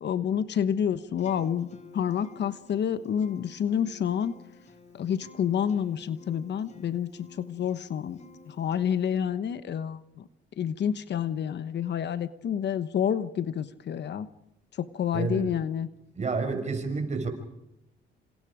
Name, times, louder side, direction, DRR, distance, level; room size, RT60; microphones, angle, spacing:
voice 1, 0.0-4.3 4.9-8.2 8.5-10.3 10.6-14.3 14.8-15.9, left 8 dB, 60° left, 13 dB, 1.2 m, -29 dB
Acoustic guitar, 1.2-9.2, left 4 dB, 35° left, 3.1 m, -51 dB
voice 2, 15.1-15.5 16.2-17.3, right 4 dB, 35° right, 6 dB, 6.1 m, -29 dB
27.5 x 27.0 x 5.1 m, 0.88 s
cardioid pair, 90°, 20 cm